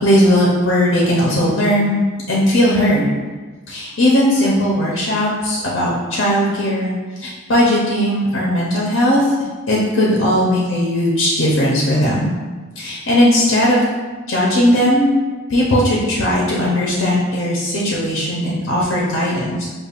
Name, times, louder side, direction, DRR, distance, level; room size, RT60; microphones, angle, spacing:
voice 1, 0.0-2.0 2.3-3.1 3.7-6.9 7.2-9.3 9.7-12.3 12.8-13.8 14.3-15.1 15.5-19.6, equal, 70° left, -5 dB, 0.6 m, -17 dB
5.1 x 2.4 x 2.4 m, 1.3 s
head